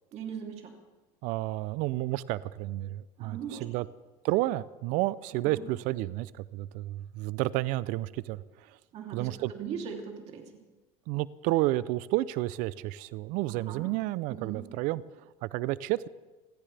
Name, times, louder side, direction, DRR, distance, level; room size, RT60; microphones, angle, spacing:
voice 1, 0.1-0.8 3.2-3.6 5.4-5.6 8.9-10.5 13.5-13.9 14.3-14.6, right 7 dB, 45° right, 2 dB, 3.0 m, -39 dB
voice 2, 1.2-3.9 4.2-8.8 9.1-9.5 11.1-16.1, right 17 dB, 60° right, 19 dB, 0.5 m, -31 dB
29.0 x 14.0 x 3.4 m, 1.2 s
supercardioid pair, 130°, 15 cm